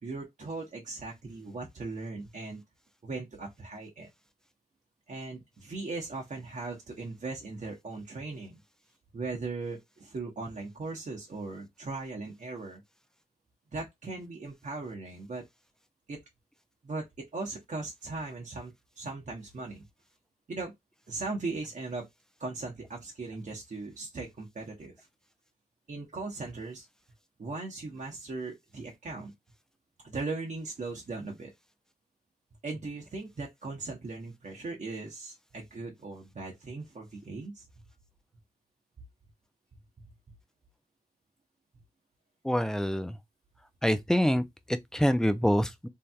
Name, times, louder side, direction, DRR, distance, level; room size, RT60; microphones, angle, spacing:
voice 1, 0.0-2.6 3.0-4.1 5.1-8.6 9.1-12.8 13.7-15.4 16.1-16.2 16.8-17.0 17.3-19.8 20.5-20.7 21.1-22.1 22.4-25.1 25.9-26.9 27.4-29.3 30.0-31.5 32.6-37.6, right 3 dB, 50° right, 0.9 m, -38 dB
voice 2, 42.4-43.2 43.8-45.9, equal, 5° left, 0.4 m, -26 dB
3.2 x 2.7 x 2.3 m
cardioid pair, 50°, 16 cm